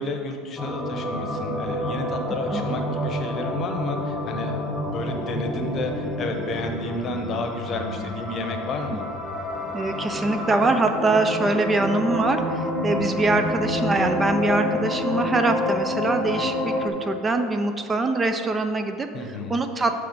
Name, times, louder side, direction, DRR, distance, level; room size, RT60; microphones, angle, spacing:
voice 1, 0.0-9.1 19.1-19.6, left 2 dB, 40° left, 4 dB, 0.8 m, -31 dB
sound 1, 0.6-16.9, left 1 dB, 10° left, 1.0 m, -28 dB
voice 2, 9.7-19.1 19.5-19.9, right 2 dB, 20° right, 7 dB, 0.4 m, -23 dB
7.6 x 3.3 x 5.2 m, 2.4 s
supercardioid pair, 95°, 0 cm